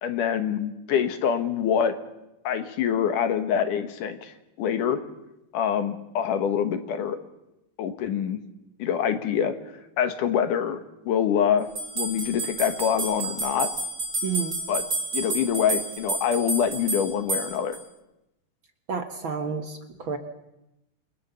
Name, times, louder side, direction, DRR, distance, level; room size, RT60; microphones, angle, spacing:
voice 1, 0.0-1.9 2.4-5.0 5.5-7.2 7.8-8.4 8.8-9.5 10.0-10.8 11.1-11.7 12.0-13.7 14.7-14.8 15.1-17.8, left 8 dB, 70° left, 8 dB, 2.8 m, -25 dB
sound 1, 11.8-17.8, right 2 dB, 35° right, 5.2 m, -30 dB
voice 2, 14.2-14.6 18.9-20.2, right 5 dB, 55° right, 6 dB, 1.5 m, -30 dB
28.0 x 21.0 x 6.9 m, 0.92 s
omnidirectional pair, 4.0 m